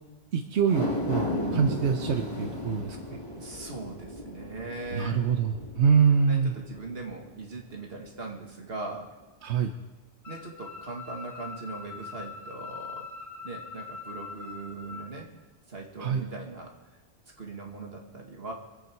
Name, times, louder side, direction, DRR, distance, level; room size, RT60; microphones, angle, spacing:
voice 1, 0.3-1.2 1.5-3.0 4.9-6.5 9.4-9.7 16.0-16.2, right 6 dB, 90° right, 5 dB, 1.1 m, -24 dB
sound 1, 0.6-7.1 7.5-7.6, left 1 dB, 30° left, 2.4 m, -34 dB
voice 2, 3.3-5.3 6.3-9.1 10.3-13.1 13.4-15.3 15.7-17.0 17.4-18.5, right 3 dB, 65° right, 0 dB, 2.4 m, -40 dB
sound 2, 10.2-15.1, left 5 dB, 45° left, 2.6 m, -42 dB
24.5 x 8.3 x 4.6 m, 1.2 s
omnidirectional pair, 1.1 m